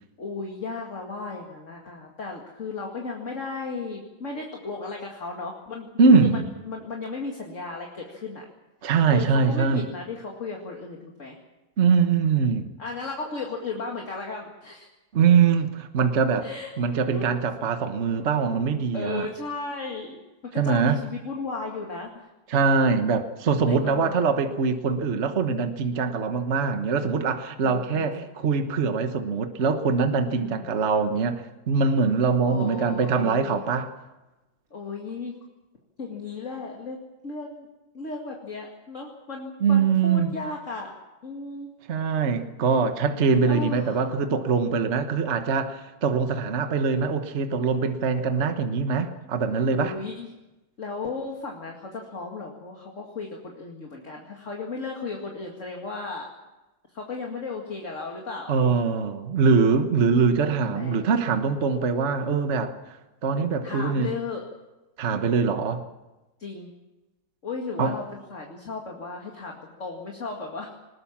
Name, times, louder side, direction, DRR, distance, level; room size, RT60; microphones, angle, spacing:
voice 1, 0.2-8.4 9.1-11.4 12.8-14.9 16.4-16.7 17.1-17.3 18.9-20.2 20.4-22.3 23.7-24.2 27.6-28.3 30.3-30.8 32.5-33.7 34.7-35.3 36.0-37.0 37.2-37.7 37.9-40.9 41.2-41.7 43.5-44.1 49.8-50.3 50.8-56.3 56.9-58.5 60.6-61.1 63.6-64.4 66.4-66.7 67.4-70.8, left 3 dB, 40° left, 0 dB, 2.4 m, -35 dB
voice 2, 6.0-6.4 8.8-9.8 11.8-12.7 15.1-16.5 16.8-19.3 20.6-21.0 22.5-33.9 39.6-40.3 41.9-50.0 58.5-62.7 63.2-64.1 65.0-65.8 67.8-67.9, right 5 dB, 40° right, 7 dB, 1.3 m, -23 dB
20.5 x 20.0 x 7.3 m, 1.1 s
omnidirectional pair, 2.0 m